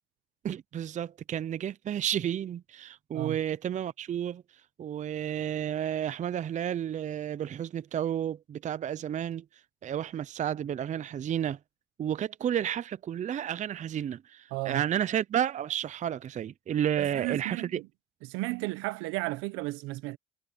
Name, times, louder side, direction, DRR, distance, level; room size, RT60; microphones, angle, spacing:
voice 1, 0.4-4.4 4.8-9.4 9.8-11.6 12.0-17.8, right 10 dB, 35° right, 0.6 m, -31 dB
voice 2, 14.5-14.8 17.0-17.9 18.2-20.2, right 21 dB, 75° right, 1.2 m, -34 dB
supercardioid pair, 85°, 21 cm